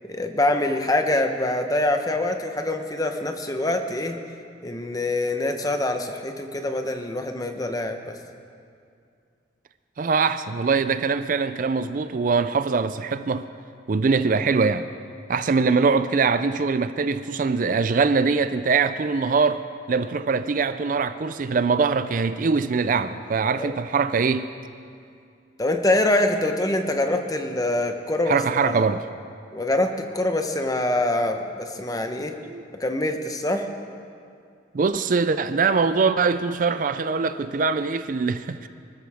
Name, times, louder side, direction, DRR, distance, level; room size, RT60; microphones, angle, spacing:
voice 1, 0.1-4.2 4.6-8.1 23.6-23.7 25.6-28.4 28.6-28.7 29.5-32.4 32.8-33.7, left 1 dB, 20° left, 5 dB, 0.9 m, -24 dB
voice 2, 10.0-13.5 13.9-14.9 15.3-19.6 19.9-24.5 28.3-29.0 32.4-32.6 34.7-38.7, right 4 dB, 45° right, 12 dB, 0.4 m, -22 dB
24.0 x 13.5 x 3.5 m, 2.3 s
head